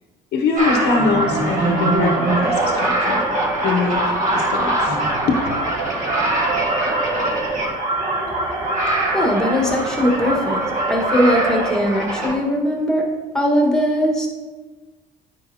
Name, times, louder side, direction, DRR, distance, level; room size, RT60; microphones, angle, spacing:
voice 1, 0.3-3.2 3.6-4.0 4.3-5.0 5.3-5.4, left 4 dB, 75° left, 2 dB, 0.8 m, -22 dB
sound 1, 0.6-12.3, right 2 dB, 50° right, 1.9 m, -22 dB
voice 2, 9.1-10.6 10.9-13.1 13.3-14.3, equal, 5° left, -1 dB, 1.5 m, -19 dB
9.7 x 5.2 x 2.8 m, 1.3 s
cardioid pair, 110°, 17 cm